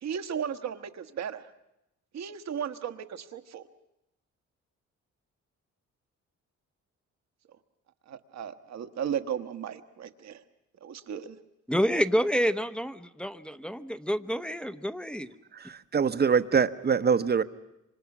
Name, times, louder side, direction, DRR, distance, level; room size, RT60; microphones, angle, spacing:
voice 1, 0.0-1.5 2.1-3.7 8.1-10.4 10.8-11.4, right 8 dB, 60° right, 1.3 m, -35 dB
voice 2, 11.7-15.3, equal, 5° left, 0.8 m, -28 dB
voice 3, 15.5-17.4, right 6 dB, 35° right, 1.0 m, -24 dB
27.0 x 25.0 x 6.1 m
cardioid pair, 90°, 30 cm